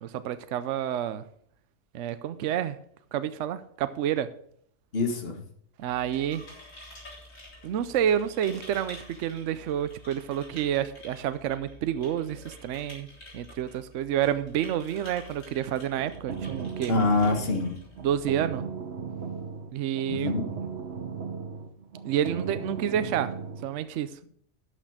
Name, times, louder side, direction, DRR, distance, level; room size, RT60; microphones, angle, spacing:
voice 1, 0.0-1.2 1.9-2.8 3.1-4.3 5.8-6.5 7.6-13.1 13.3-17.0 18.0-18.6 19.7-20.3 22.0-23.3 23.6-24.2, right 10 dB, 75° right, 0.9 m, -29 dB
voice 2, 4.9-5.4 16.9-17.8 20.1-20.4, left 3 dB, 50° left, 1.8 m, -25 dB
sound 1, 5.8-18.5, left 1 dB, 90° left, 4.2 m, -49 dB
sound 2, 16.0-23.7, right 6 dB, 60° right, 1.5 m, -37 dB
12.0 x 6.5 x 4.9 m
omnidirectional pair, 1.3 m